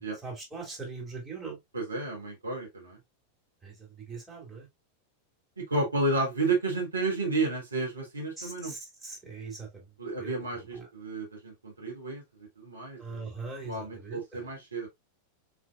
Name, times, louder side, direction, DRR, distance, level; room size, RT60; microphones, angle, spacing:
voice 1, 0.2-1.6 3.6-3.8 4.1-4.7 8.4-9.8 10.2-10.3 10.7-10.9 13.0-14.4, right 4 dB, 10° right, 2.5 m, -41 dB
voice 2, 1.7-3.0 5.6-8.7 10.0-13.3 13.6-14.9, right 2 dB, 80° right, 1.6 m, -32 dB
4.8 x 3.3 x 2.4 m
figure-of-eight pair, 90°, 0 cm